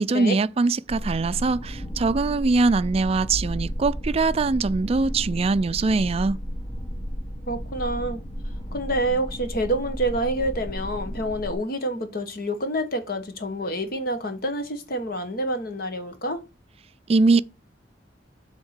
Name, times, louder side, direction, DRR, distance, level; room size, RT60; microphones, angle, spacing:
voice 1, 0.0-6.4 17.1-17.4, right 3 dB, 35° right, 0.3 m, -22 dB
sound 1, 0.9-11.5, equal, 25° left, 1.2 m, -33 dB
voice 2, 7.5-8.2 8.7-16.4, right 1 dB, 55° left, 1.3 m, -27 dB
7.3 x 3.7 x 6.5 m
head